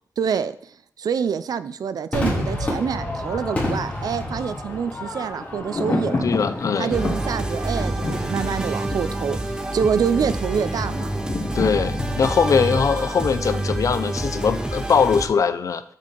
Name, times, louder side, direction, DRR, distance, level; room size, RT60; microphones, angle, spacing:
voice 1, 0.2-0.5 1.0-6.2 6.8-9.4 9.7-11.1, right 7 dB, 75° right, 13 dB, 0.3 m, -26 dB
Crowd / Fireworks, 2.1-8.7, left 1 dB, 20° left, 1.9 m, -30 dB
Thunder, 2.8-13.7 14.0-14.1, left 2 dB, 40° left, 1.1 m, -32 dB
voice 2, 6.2-6.9 11.5-15.8, left 6 dB, 55° left, 12 dB, 0.4 m, -21 dB
sound 1, 6.9-15.3, right 2 dB, 10° right, 0.6 m, -27 dB
6.5 x 5.3 x 3.8 m, 0.63 s
wide cardioid pair, 150°, 7 cm